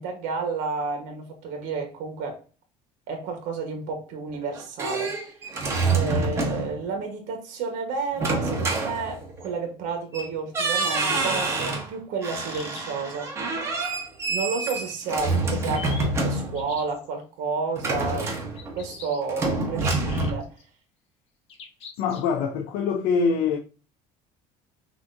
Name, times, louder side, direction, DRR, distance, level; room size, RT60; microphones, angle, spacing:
voice 1, 0.0-2.4 3.1-5.3 5.9-13.3 14.3-20.5, right 4 dB, 65° right, 1.3 m, -31 dB
sound 1, 4.3-6.8 8.2-9.5 10.1-10.3 10.5-11.9 12.2-16.7 17.8-18.9 19.3-20.3, right 3 dB, 20° right, 1.0 m, -27 dB
sound 2, 12.5-13.3 15.4-16.0 16.5-17.1 18.5-19.2 20.0-20.6 21.5-22.4, left 5 dB, 40° left, 1.3 m, -43 dB
voice 2, 22.0-23.6, left 5 dB, 80° left, 0.7 m, -24 dB
6.0 x 2.9 x 2.6 m
cardioid pair, 170°, 14 cm